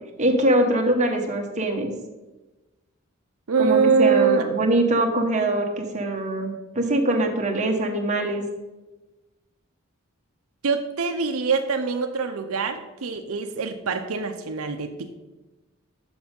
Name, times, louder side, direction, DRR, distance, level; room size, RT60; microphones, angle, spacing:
voice 1, 0.2-1.9 3.6-8.4, right 1 dB, 35° right, 2 dB, 1.2 m, -23 dB
voice 2, 3.5-4.5 10.6-15.1, right 5 dB, 85° right, 6 dB, 0.6 m, -23 dB
7.1 x 6.2 x 5.3 m, 1.1 s
head